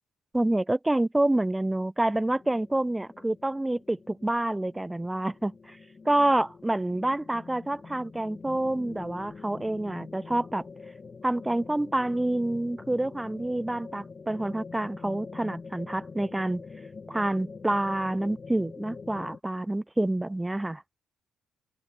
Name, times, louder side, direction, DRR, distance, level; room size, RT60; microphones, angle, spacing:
voice 1, 0.3-5.8 6.1-10.6 11.2-16.6 17.1-20.8, right 1 dB, 10° right, 0.3 m, -28 dB
sound 1, 2.2-19.4, left 4 dB, 35° left, 2.3 m, -45 dB
open air
cardioid pair, 90°, 0 cm